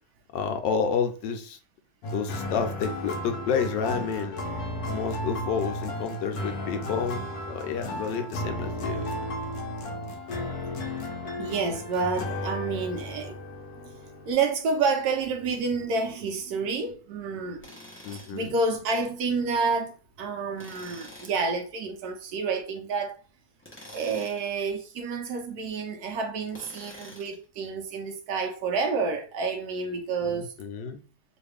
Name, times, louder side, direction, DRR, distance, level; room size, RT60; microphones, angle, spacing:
voice 1, 0.3-1.6 2.1-4.4 4.9-9.2 18.0-18.5 30.2-31.0, left 6 dB, 85° left, 1.3 m, -30 dB
sound 1, 2.0-14.3, left 1 dB, 65° left, 1.1 m, -34 dB
voice 2, 11.4-13.4 13.8-14.0 14.3-17.7 18.1-23.2 23.9-30.5, right 4 dB, 70° right, 1.0 m, -29 dB
Tools, 17.6-18.5 20.6-21.4 23.6-24.5 26.5-27.4, left 1 dB, 15° left, 0.4 m, -46 dB
3.0 x 2.5 x 3.3 m
omnidirectional pair, 1.9 m